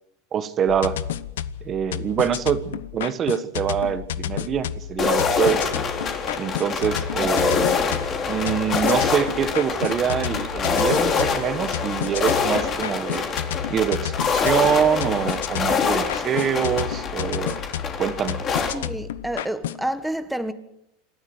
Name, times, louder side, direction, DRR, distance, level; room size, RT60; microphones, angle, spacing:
voice 1, 0.3-1.0 1.6-5.7 6.4-7.8 8.3-13.3 13.7-17.6 18.0-18.4, right 8 dB, 30° right, 1.4 m, -25 dB
sound 1, 0.7-19.8, left 10 dB, 90° left, 0.9 m, -31 dB
sound 2, 5.0-18.7, left 5 dB, 30° left, 3.4 m, -25 dB
voice 2, 18.7-20.5, right 1 dB, 5° right, 1.5 m, -29 dB
27.5 x 12.5 x 7.9 m
supercardioid pair, 130°, 0 cm